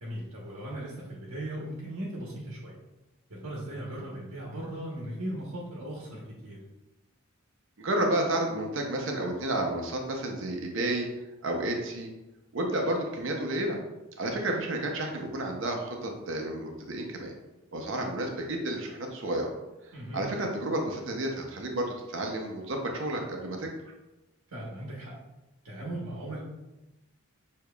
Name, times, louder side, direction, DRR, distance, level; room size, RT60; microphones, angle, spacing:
voice 1, 0.0-2.8 3.3-6.6 19.9-20.2 24.5-25.1 25.6-26.4, right 1 dB, 85° right, -4 dB, 1.0 m, -38 dB
voice 2, 7.8-11.1 11.4-12.1 12.5-13.8 14.2-17.3 17.7-19.5 20.1-23.7, right 1 dB, 55° right, 1 dB, 0.6 m, -31 dB
6.6 x 2.8 x 2.3 m, 1.0 s
head